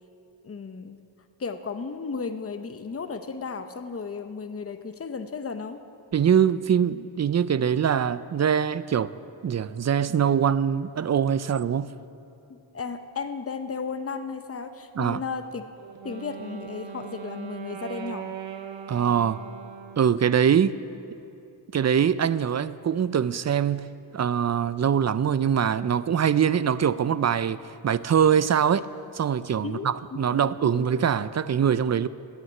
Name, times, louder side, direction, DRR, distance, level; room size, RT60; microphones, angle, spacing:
voice 1, 0.4-1.0 1.4-5.8 12.5-15.6 16.0-18.4 29.6-31.0, left 5 dB, 30° left, 0.8 m, -34 dB
voice 2, 6.1-9.1 9.4-11.9 15.0-15.2 18.9-19.4 20.0-20.8 21.7-23.9 24.1-28.9 29.1-32.1, right 8 dB, 40° right, 0.4 m, -23 dB
Wind instrument woodwind instrument, 15.8-20.3, right 8 dB, 75° right, 0.9 m, -39 dB
11.0 x 9.6 x 8.8 m
cardioid pair, 75°, 46 cm